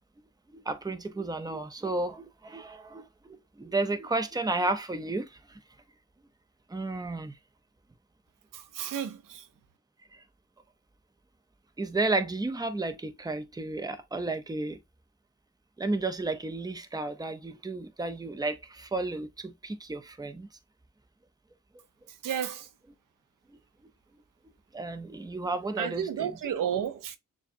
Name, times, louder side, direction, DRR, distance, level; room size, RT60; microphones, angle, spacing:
voice 1, 0.5-5.3 6.7-7.3 11.8-14.8 15.8-20.5 24.7-26.5, right 2 dB, 10° right, 0.6 m, -32 dB
voice 2, 8.5-9.4 22.2-22.7 25.8-27.2, right 9 dB, 85° right, 0.6 m, -32 dB
6.7 x 2.3 x 2.6 m
wide cardioid pair, 95°, 31 cm